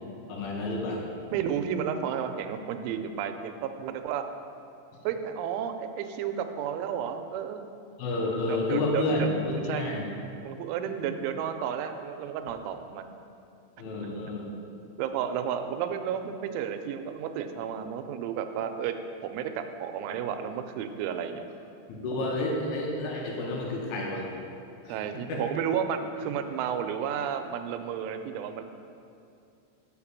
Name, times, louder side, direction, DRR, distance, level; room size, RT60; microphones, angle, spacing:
voice 1, 0.3-1.0 8.0-10.1 13.8-14.5 21.9-24.3 24.9-25.0 25.3-25.4, left 2 dB, 85° left, -1 dB, 3.7 m, -30 dB
voice 2, 1.3-4.2 5.0-7.6 8.4-9.3 9.7-10.0 10.4-13.1 14.5-21.4 24.9-28.6, right 8 dB, 85° right, 8 dB, 3.0 m, -32 dB
6.6 x 5.4 x 7.1 m, 2.5 s
omnidirectional pair, 5.4 m